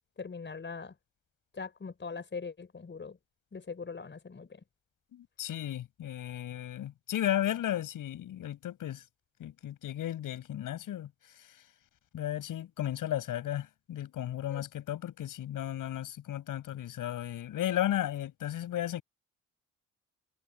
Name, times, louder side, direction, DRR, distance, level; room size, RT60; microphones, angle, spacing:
voice 1, 0.2-0.9 1.6-3.1 3.5-4.5 14.5-14.6, left 5 dB, 30° left, 5.5 m, -41 dB
voice 2, 5.1-9.0 9.4-11.1 11.4-11.6 12.1-19.0, left 12 dB, 55° left, 6.6 m, -34 dB
figure-of-eight pair, 50°, 39 cm